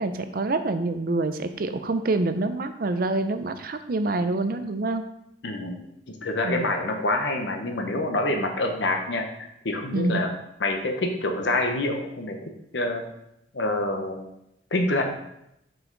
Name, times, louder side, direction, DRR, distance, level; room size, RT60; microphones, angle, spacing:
voice 1, 0.0-5.0 6.4-6.7 9.9-10.2, right 2 dB, 50° right, 9 dB, 0.5 m, -26 dB
voice 2, 5.4-10.3 10.6-12.3 12.7-13.0 13.5-14.3 14.7-15.0, left 2 dB, 75° left, 4 dB, 1.0 m, -27 dB
5.8 x 5.5 x 3.9 m, 0.81 s
head